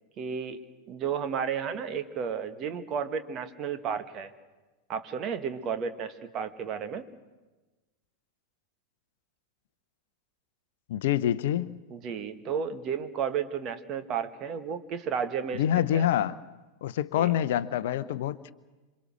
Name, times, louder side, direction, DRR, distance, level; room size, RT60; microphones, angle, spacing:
voice 1, 0.2-4.3 4.9-7.0 11.9-15.6 15.9-16.1 17.2-17.3, right 7 dB, 35° right, 8 dB, 1.7 m, -33 dB
voice 2, 10.9-11.7 15.5-16.4 16.8-18.5, left 11 dB, 55° left, 15 dB, 0.8 m, -26 dB
27.5 x 24.5 x 6.4 m, 1.2 s
figure-of-eight pair, 90°, 0 cm